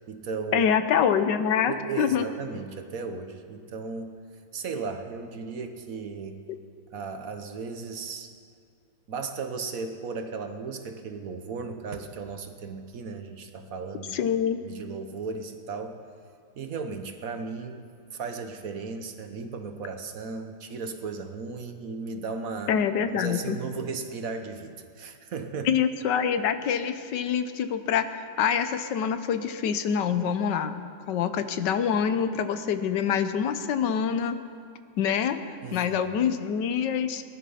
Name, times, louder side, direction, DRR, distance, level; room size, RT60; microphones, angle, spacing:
voice 1, 0.0-0.7 1.7-4.2 4.5-6.4 6.9-8.3 9.1-14.1 14.6-16.0 16.6-17.9 18.1-22.8 23.1-25.7 35.6-36.2, right 4 dB, 60° right, 7 dB, 1.2 m, -35 dB
voice 2, 0.5-2.3 6.5-6.6 14.1-14.6 22.7-23.6 25.6-30.8 31.1-34.4 35.0-35.4 35.7-37.2, left 7 dB, 80° left, 10 dB, 1.5 m, -25 dB
19.0 x 12.0 x 5.6 m, 2.3 s
omnidirectional pair, 1.9 m